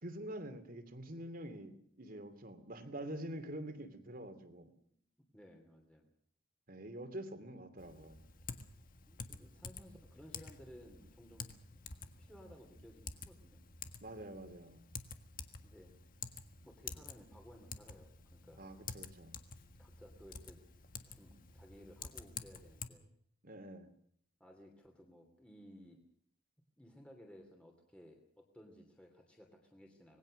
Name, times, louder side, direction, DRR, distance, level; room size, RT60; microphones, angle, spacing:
voice 1, 0.0-4.7 6.7-8.2 14.0-14.8 18.6-19.4 23.4-23.9, right 1 dB, 50° right, 9 dB, 2.8 m, -46 dB
voice 2, 5.3-6.1 9.1-11.5 11.7-11.9 12.2-13.6 15.6-15.9 16.6-18.6 19.8-20.6 21.1-23.0 24.4-26.0 26.8-30.2, equal, 5° left, 1 dB, 2.9 m, -58 dB
Typing, 7.8-22.9, left 5 dB, 45° left, 1.6 m, -50 dB
26.0 x 19.5 x 6.5 m, 0.65 s
head